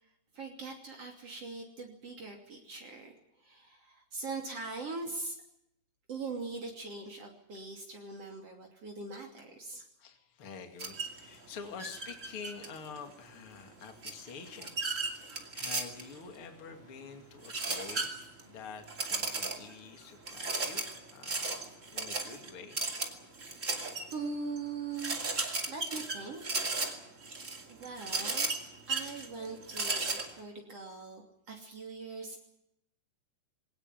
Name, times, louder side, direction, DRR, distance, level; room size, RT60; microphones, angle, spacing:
voice 1, 0.0-5.4 6.1-9.8 11.4-11.5 22.0-22.1 23.5-25.2 25.7-26.4 27.7-32.4, right 4 dB, 50° right, 1 dB, 3.8 m, -42 dB
voice 2, 10.0-21.6 21.9-22.8, left 6 dB, 45° left, 5 dB, 3.1 m, -47 dB
sound 1, 10.8-11.2 11.8-13.0 14.0-16.2 17.4-18.4 18.9-19.7 20.3-24.1 24.6-24.7 24.9-30.3, right 3 dB, 25° right, 2.6 m, -35 dB
22.5 x 18.5 x 9.2 m, 0.78 s
omnidirectional pair, 3.4 m